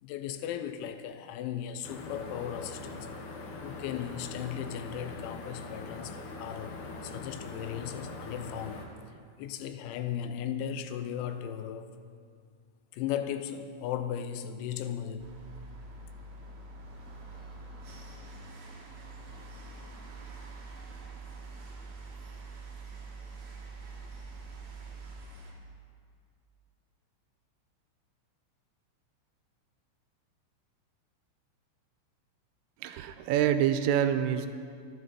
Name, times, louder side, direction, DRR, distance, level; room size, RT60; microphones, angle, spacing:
voice 1, 0.0-3.1 3.6-12.0 12.9-15.3, left 9 dB, 90° left, 3.6 m, -37 dB
sound 1, 1.8-8.9, left 3 dB, 65° left, 2.8 m, -42 dB
sound 2, 15.2-25.5, right 3 dB, 50° right, 2.4 m, -45 dB
voice 2, 32.8-34.5, right 10 dB, 85° right, 3.2 m, -26 dB
24.5 x 12.0 x 4.3 m
omnidirectional pair, 6.0 m